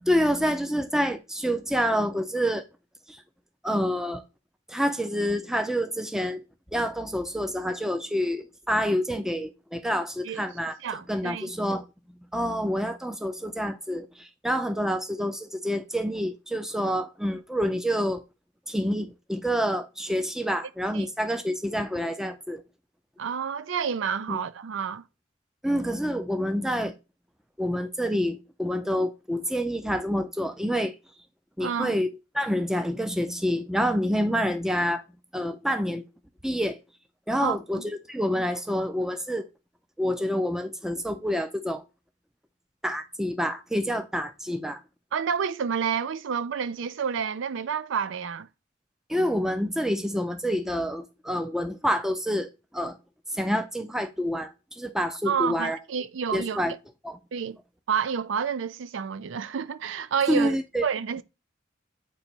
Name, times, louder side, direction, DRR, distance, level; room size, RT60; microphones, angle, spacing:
voice 1, 0.0-2.6 3.1-3.2 3.6-4.2 4.7-6.4 6.7-10.8 11.1-11.8 12.3-18.2 18.7-22.6 24.3-24.4 25.6-26.9 27.6-30.9 31.6-32.1 32.3-35.0 35.3-36.1 36.4-36.8 37.3-39.5 40.0-41.8 42.8-44.8 49.1-53.0 53.3-55.8 56.3-56.7 57.0-57.2 60.3-60.9, equal, ahead, 0.5 m, -27 dB
voice 2, 10.8-11.5 20.9-21.1 23.2-25.0 31.6-31.9 37.4-37.8 45.1-48.5 55.3-56.6 57.3-57.6 57.9-61.2, right 7 dB, 75° right, 0.4 m, -29 dB
8.0 x 2.9 x 4.4 m
head